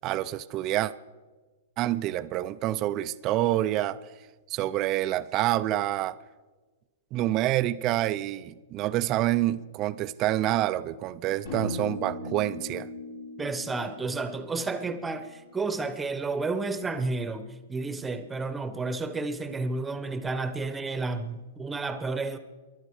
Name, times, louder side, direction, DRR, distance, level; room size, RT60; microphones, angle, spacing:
voice 1, 0.0-0.9 1.8-4.0 4.5-6.1 7.1-12.9, right 14 dB, 40° right, 0.5 m, -27 dB
sound 1, 11.5-15.6, left 2 dB, 75° left, 3.9 m, -38 dB
voice 2, 13.4-22.4, right 3 dB, 10° right, 1.0 m, -31 dB
28.0 x 11.5 x 3.2 m
hypercardioid pair, 115°, 0 cm